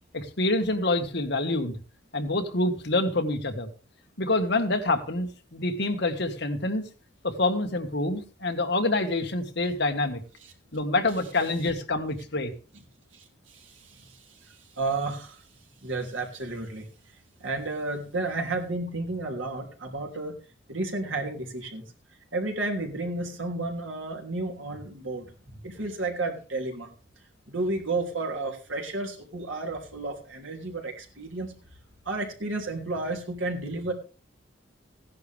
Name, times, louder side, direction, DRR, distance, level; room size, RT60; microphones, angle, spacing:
voice 1, 0.1-1.8 2.1-3.7 4.2-6.9 7.2-10.2 10.7-12.5, left 2 dB, 60° left, 5 dB, 1.8 m, -26 dB
voice 2, 13.1-15.5 15.8-16.9 17.4-20.3 20.7-21.8 22.3-25.3 25.6-26.9 27.5-31.5 32.0-33.9, right 2 dB, 85° right, 2 dB, 3.1 m, -32 dB
16.0 x 10.5 x 3.5 m, 0.34 s
head